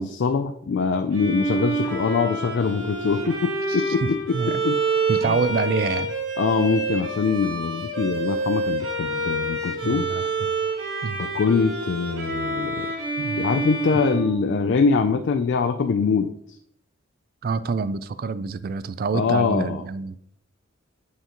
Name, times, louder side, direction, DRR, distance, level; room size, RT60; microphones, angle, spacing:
voice 1, 0.0-4.8 5.3-5.4 6.4-10.1 11.2-12.9 13.3-16.6 19.1-19.8, left 5 dB, 60° left, 0.3 m, -23 dB
Bowed string instrument, 1.1-15.0, right 3 dB, 80° right, 1.6 m, -28 dB
voice 2, 4.0-4.6 5.1-6.1 9.8-10.3 11.0-11.3 13.2-13.4 17.4-20.2, right 5 dB, 45° right, 0.3 m, -26 dB
7.7 x 5.6 x 2.9 m
head